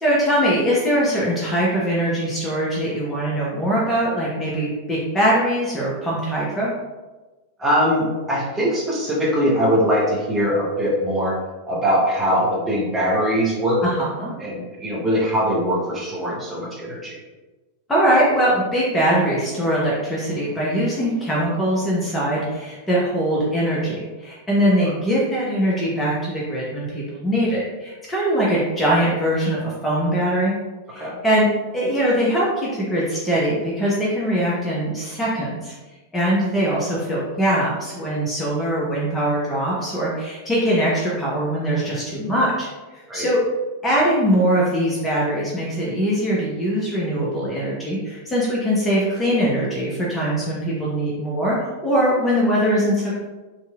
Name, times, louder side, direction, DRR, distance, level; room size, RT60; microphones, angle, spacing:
voice 1, 0.0-6.7 13.8-14.3 17.9-30.5 30.9-35.7 36.1-42.7 42.9-43.4 43.8-53.2, equal, 10° left, -6 dB, 0.7 m, -22 dB
voice 2, 7.6-11.3 11.7-13.8 14.4-17.2 31.0-31.1 43.1-43.3, equal, 15° right, -5 dB, 0.9 m, -21 dB
3.0 x 2.7 x 2.3 m, 1.2 s
figure-of-eight pair, 90°, 0 cm